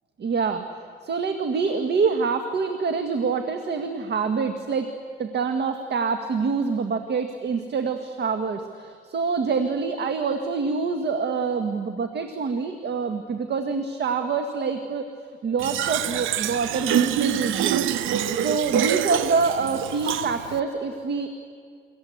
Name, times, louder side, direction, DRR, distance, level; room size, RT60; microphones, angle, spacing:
voice 1, 0.2-0.7 1.0-15.0 15.4-17.9 18.3-21.3, right 5 dB, 55° right, 6 dB, 1.8 m, -26 dB
Fill (with liquid), 15.6-20.6, right 10 dB, 85° right, 0.9 m, -26 dB
29.0 x 23.5 x 8.0 m, 2.2 s
cardioid pair, 90°, 20 cm